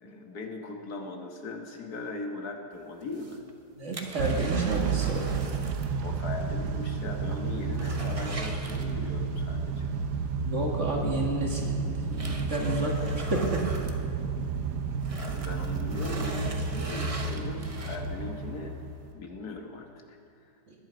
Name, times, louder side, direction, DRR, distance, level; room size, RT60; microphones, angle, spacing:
voice 1, 0.0-3.4 6.0-10.0 15.1-18.8 19.1-20.5, left 3 dB, 70° left, 3 dB, 1.8 m, -39 dB
sound 1, 3.0-6.0 6.3-6.4 6.8-6.9 7.3-9.3 10.7-10.8 11.5-14.6 14.9-18.3 18.8-18.9, right 3 dB, 25° right, 0.8 m, -41 dB
voice 2, 3.8-5.3 10.4-13.6, right 2 dB, 45° right, 0 dB, 2.0 m, -30 dB
Motor vehicle (road) / Engine starting / Accelerating revving vroom, 4.2-19.2, right 4 dB, 75° right, 1.3 m, -31 dB
20.0 x 11.0 x 5.1 m, 2.5 s
omnidirectional pair, 1.8 m